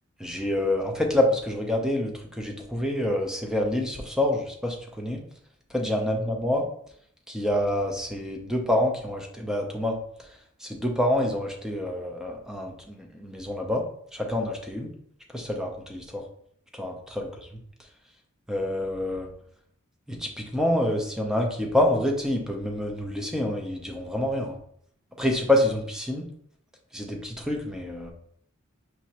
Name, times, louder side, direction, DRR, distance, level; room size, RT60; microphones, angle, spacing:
voice 1, 0.2-5.2 5.7-6.6 7.3-10.0 10.6-13.8 14.1-14.9 15.3-16.2 16.7-17.3 18.5-19.3 20.1-24.6 25.2-26.2 26.9-28.1, left 1 dB, 5° right, 2 dB, 0.6 m, -27 dB
4.8 x 3.1 x 2.8 m, 0.66 s
head